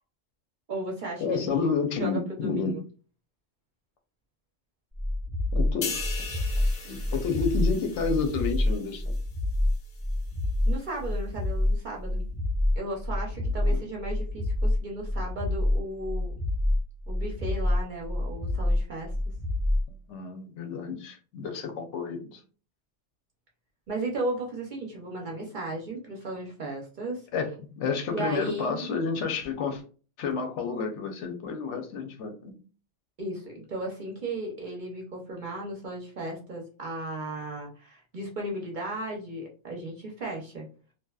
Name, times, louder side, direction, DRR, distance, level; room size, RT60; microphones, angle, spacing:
voice 1, 0.7-1.5 1.9-2.8 10.7-12.2 12.8-16.3 17.1-19.1 23.9-27.3 28.1-28.9 33.2-40.7, right 2 dB, 55° right, -1 dB, 0.6 m, -35 dB
voice 2, 1.2-2.7 5.5-6.0 6.8-9.2 13.6-13.8 20.1-22.4 27.3-27.5 27.8-29.8 30.2-32.5, left 5 dB, 85° left, 5 dB, 0.9 m, -30 dB
sound 1, 4.9-19.9, left 1 dB, 10° right, 0.7 m, -27 dB
sound 2, 5.8-9.3 9.7-10.0, left 4 dB, 50° left, 0.6 m, -39 dB
2.7 x 2.1 x 2.2 m, 0.38 s
omnidirectional pair, 1.2 m